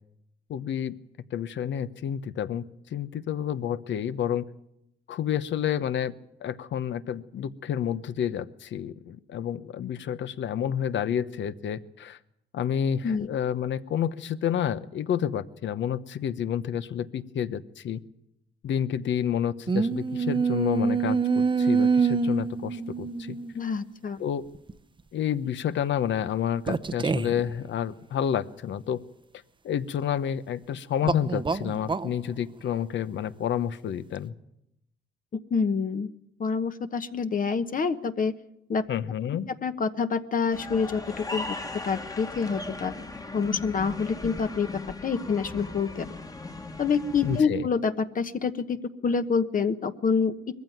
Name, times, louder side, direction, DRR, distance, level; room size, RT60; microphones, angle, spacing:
voice 1, 0.5-0.9 1.3-2.6 2.9-4.4 5.1-6.1 6.4-12.2 12.5-18.0 18.6-23.4 24.2-24.4 25.1-29.0 29.6-34.3 38.9-39.5 47.2-47.7, left 9 dB, 65° left, 14 dB, 1.0 m, -29 dB
sound 1, 19.7-23.6 24.5-24.7 26.7-27.5 31.0-32.1, right 5 dB, 25° right, 0.8 m, -26 dB
voice 2, 23.5-24.2 35.5-36.1 36.4-38.3 38.7-38.8 39.6-41.6 41.8-42.9 43.3-44.7 45.0-46.1 46.8-48.8 49.0-50.3, left 5 dB, 45° left, 9 dB, 1.2 m, -27 dB
sound 2, 40.5-47.4, left 2 dB, 20° left, 1.5 m, -38 dB
21.5 x 15.0 x 9.4 m, 0.81 s
cardioid pair, 90°, 20 cm